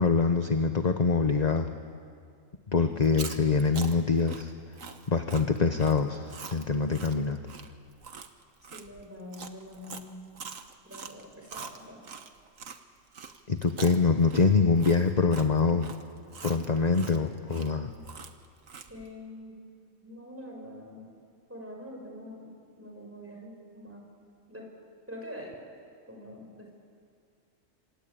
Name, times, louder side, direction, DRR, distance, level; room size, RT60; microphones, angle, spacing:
voice 1, 0.0-1.7 2.7-4.5 5.1-7.4 13.5-15.9 16.4-17.9, left 4 dB, 35° left, 7 dB, 1.1 m, -24 dB
Chewing mastication, 3.0-12.8 13.1-19.1, right 5 dB, 85° right, 1.7 m, -44 dB
voice 2, 8.6-10.2 10.8-12.0 18.9-19.6 20.0-21.1 21.5-22.5 22.8-24.1 24.5-24.7 25.1-25.6 26.1-26.7, left 1 dB, 10° right, 0 dB, 6.4 m, -44 dB
27.0 x 24.5 x 8.8 m, 2.2 s
omnidirectional pair, 1.4 m